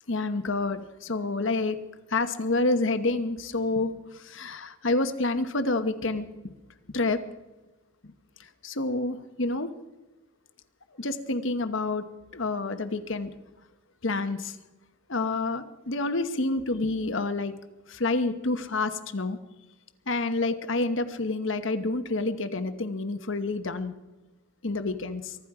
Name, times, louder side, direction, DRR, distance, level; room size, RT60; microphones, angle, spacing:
voice 1, 0.1-1.8 2.1-6.3 6.9-7.2 8.6-9.7 11.0-12.0 12.3-13.3 14.0-14.6 15.1-17.5 17.9-19.4 20.1-23.9 24.6-25.4, left 2 dB, 60° left, 9 dB, 1.1 m, -28 dB
24.0 x 12.0 x 4.9 m, 1.1 s
head